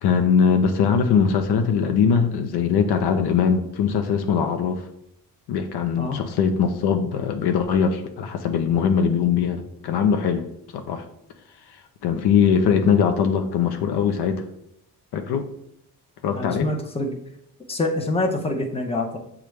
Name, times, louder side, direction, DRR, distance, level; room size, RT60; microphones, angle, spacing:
voice 1, 0.0-4.8 5.5-10.4 10.7-11.0 12.0-14.4 15.1-15.5 16.2-16.7, left 6 dB, 70° left, 6 dB, 0.6 m, -21 dB
voice 2, 16.3-17.1 17.7-19.2, left 2 dB, 15° left, 3 dB, 0.7 m, -25 dB
6.6 x 2.4 x 3.2 m, 0.76 s
cardioid pair, 70°, 41 cm